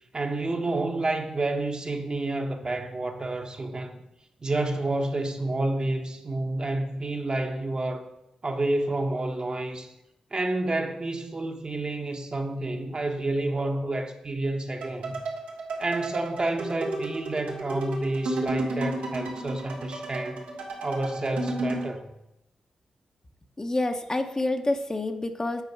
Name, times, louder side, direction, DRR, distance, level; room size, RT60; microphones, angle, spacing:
voice 1, 0.1-4.0 4.4-8.1 8.4-9.9 10.3-15.2 15.8-20.4 20.8-22.1, right 2 dB, 40° right, 1.0 m, -29 dB
sound 1, 14.8-21.9, right 2 dB, 85° right, 1.2 m, -33 dB
voice 2, 23.6-25.6, left 2 dB, 30° left, 0.8 m, -28 dB
8.1 x 4.5 x 4.6 m
supercardioid pair, 45°, 2 cm